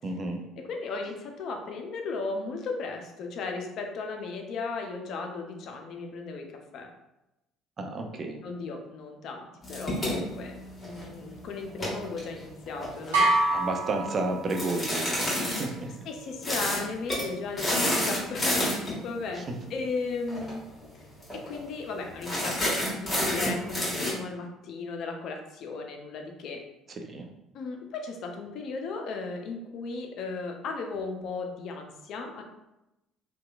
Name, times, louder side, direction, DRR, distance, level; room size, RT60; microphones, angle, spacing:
voice 1, 0.0-0.4 7.8-8.4 13.5-16.1 19.4-19.5 27.1-27.3, right 2 dB, 40° right, 4 dB, 0.4 m, -32 dB
voice 2, 0.6-6.9 8.4-10.5 10.8-13.3 16.1-20.6 20.9-21.0 21.3-26.6 27.5-32.4, left 4 dB, 60° left, 3 dB, 0.4 m, -36 dB
sound 1, 9.6-11.2 11.7-13.2 14.5-15.7 16.4-16.8 17.1-17.3 17.6-19.0 20.3-20.5 20.8-20.9 21.2-21.6 22.2-24.1, left 1 dB, 25° left, 1.3 m, -29 dB
sound 2, 13.1-14.9, right 2 dB, 80° right, 1.0 m, -26 dB
2.8 x 2.2 x 2.3 m, 0.92 s
hypercardioid pair, 60°, 0 cm